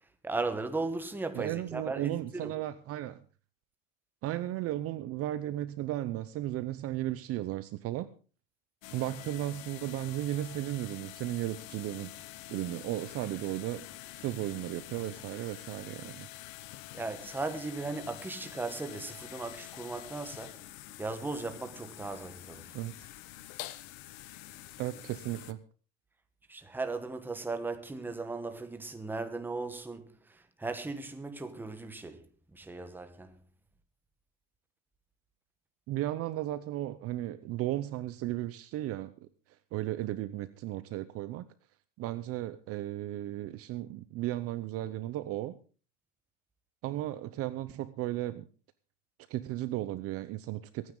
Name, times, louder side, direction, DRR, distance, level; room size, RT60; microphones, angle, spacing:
voice 1, 0.2-2.5 16.9-20.6 21.0-22.8 26.5-33.4, right 3 dB, 5° right, 1.1 m, -37 dB
voice 2, 1.3-3.2 4.2-8.1 8.9-12.1 12.5-16.3 22.7-22.9 24.8-25.6 35.9-39.1 39.7-41.4 42.0-45.6 46.8-48.4 49.3-50.9, right 14 dB, 40° right, 0.7 m, -35 dB
sound 1, 8.8-25.5, left 15 dB, 65° left, 1.1 m, -47 dB
23.5 x 9.5 x 3.8 m
cardioid pair, 155°, 37 cm